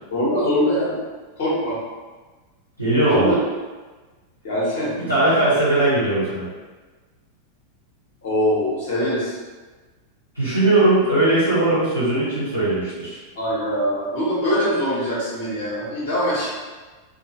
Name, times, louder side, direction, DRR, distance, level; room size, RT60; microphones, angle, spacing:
voice 1, 0.1-0.9 1.4-1.8 3.1-3.4 4.4-4.9 8.2-9.3 13.3-16.5, equal, 50° left, -8 dB, 1.4 m, -22 dB
voice 2, 2.8-3.3 5.1-6.5 10.3-13.2, right 2 dB, 90° left, -11 dB, 1.0 m, -19 dB
3.0 x 2.6 x 2.7 m, 1.3 s
figure-of-eight pair, 90°, 0 cm